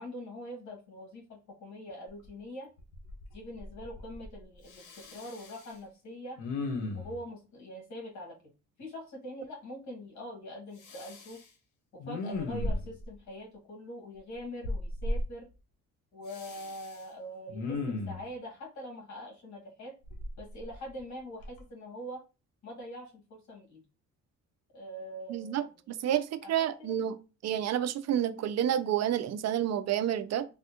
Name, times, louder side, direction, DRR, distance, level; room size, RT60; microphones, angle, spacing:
voice 1, 0.0-2.7 3.3-6.4 6.9-8.4 8.8-11.4 11.9-15.5 16.1-20.0 20.4-22.2 22.6-23.8 24.7-25.6 26.4-27.0, equal, 70° left, 1.6 m, -43 dB
Respiratory sounds, 2.2-2.3 2.8-3.3 3.6-4.3 4.7-5.7 6.4-7.2 10.8-11.4 12.0-13.1 14.6-15.2 16.3-17.0 17.5-18.3 20.1-21.0 21.4-21.6, left 2 dB, 85° left, 0.9 m, -36 dB
voice 2, 25.3-27.2 27.4-30.5, right 10 dB, 60° right, 0.4 m, -29 dB
3.4 x 2.3 x 2.8 m
cardioid pair, 90°, 30 cm